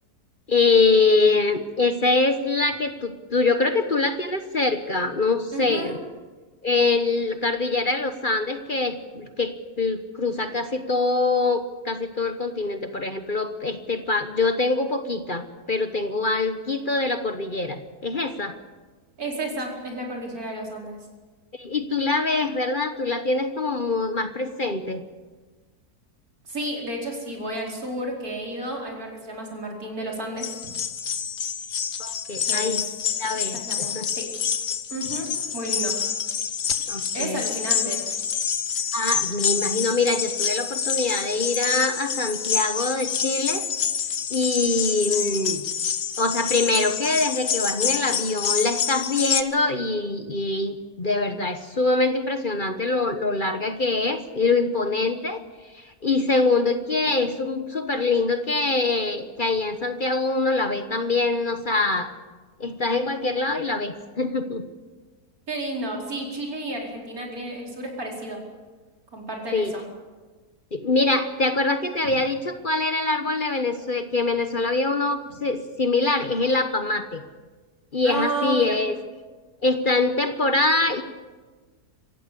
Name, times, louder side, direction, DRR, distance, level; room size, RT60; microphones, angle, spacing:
voice 1, 0.5-6.0 6.6-18.5 21.6-25.0 32.0-32.8 33.2-34.1 36.9-37.4 38.9-43.6 44.3-45.6 46.2-55.4 56.0-62.1 62.6-64.6 69.5-69.7 70.7-77.2 77.9-78.9 79.6-81.0, left 3 dB, 35° left, 8 dB, 1.2 m, -24 dB
voice 2, 5.5-6.0 19.2-21.0 26.4-30.6 32.5-32.8 33.5-34.3 34.9-35.9 37.1-38.0 65.5-68.4 69.1-69.8 78.0-78.8, right 1 dB, 65° right, -1 dB, 5.2 m, -31 dB
sound 1, 30.4-49.4, left 7 dB, 55° left, 1.3 m, -27 dB
26.0 x 15.5 x 8.4 m, 1.3 s
omnidirectional pair, 1.7 m